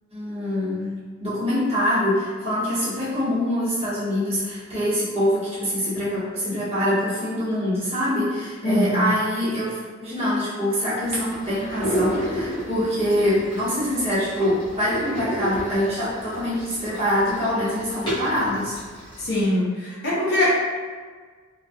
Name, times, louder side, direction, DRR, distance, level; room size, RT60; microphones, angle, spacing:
voice 1, 0.1-18.8, equal, 30° right, -11 dB, 0.9 m, -24 dB
voice 2, 8.6-9.1 19.2-20.5, left 1 dB, 55° left, -7 dB, 0.7 m, -22 dB
sound 1, 11.0-19.4, right 1 dB, 20° left, 0.9 m, -32 dB
2.2 x 2.2 x 2.6 m, 1.5 s
head